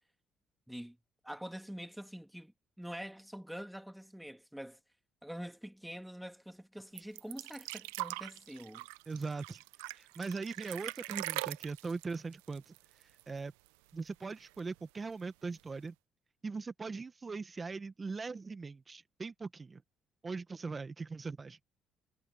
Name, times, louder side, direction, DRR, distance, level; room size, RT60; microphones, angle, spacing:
voice 1, 1.2-4.8 5.2-8.9, equal, 5° right, 1.9 m, -45 dB
sound 1, 7.0-13.4 13.7-13.8 14.1-14.8 15.6-15.7, right 22 dB, 90° right, 0.6 m, -42 dB
voice 2, 9.1-9.6 9.9-12.7 13.3-13.5 13.9-15.9 16.4-19.8 20.2-21.6, right 4 dB, 35° right, 1.4 m, -40 dB
hypercardioid pair, 60°, 0 cm